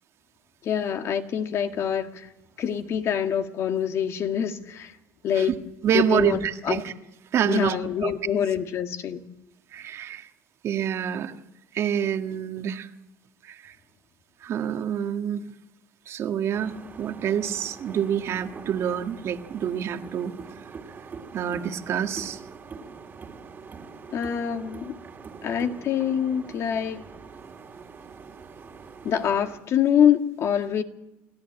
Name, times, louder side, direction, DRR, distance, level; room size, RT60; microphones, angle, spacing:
voice 1, 0.6-2.3 2.6-4.9 5.2-5.5 5.9-6.8 7.4-9.2 24.1-25.0 25.4-27.1 29.0-30.8, left 8 dB, 50° left, 1.8 m, -25 dB
voice 2, 5.8-6.9 7.3-8.1 9.7-10.3 10.6-11.3 11.7-12.9 13.4-13.7 14.4-15.5 16.1-20.3 21.3-22.4, right 9 dB, 50° right, 1.7 m, -27 dB
sound 1, 16.5-29.6, right 5 dB, 30° right, 2.4 m, -43 dB
29.0 x 13.5 x 8.8 m
supercardioid pair, 95°, 6 cm